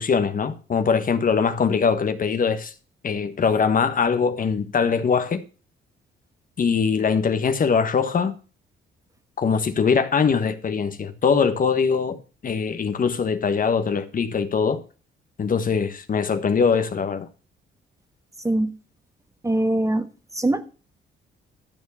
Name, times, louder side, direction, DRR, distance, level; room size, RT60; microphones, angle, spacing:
voice 1, 0.0-2.7 3.0-5.4 6.6-8.3 9.4-12.2 12.4-14.8 15.4-17.3, left 6 dB, 45° left, 1.2 m, -22 dB
voice 2, 19.4-20.1 20.3-20.6, right 1 dB, 15° right, 1.3 m, -22 dB
12.5 x 4.6 x 7.1 m
cardioid pair, 90°, 20 cm